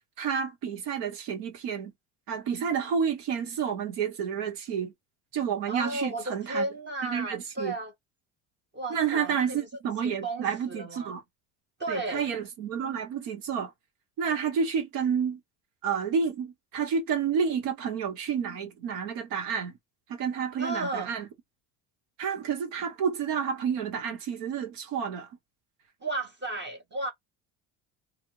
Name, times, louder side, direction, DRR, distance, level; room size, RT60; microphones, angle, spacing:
voice 1, 0.2-1.9 2.3-4.9 5.3-6.7 7.0-7.7 8.9-11.2 11.9-13.7 14.2-15.4 15.8-19.7 20.1-21.3 22.2-25.3, right 7 dB, 75° right, 1.1 m, -30 dB
voice 2, 5.7-7.9 8.7-9.6 10.0-11.1 11.8-12.2 20.6-21.1 26.0-27.1, right 2 dB, 25° right, 0.8 m, -34 dB
2.5 x 2.4 x 3.1 m
supercardioid pair, 80°, 42 cm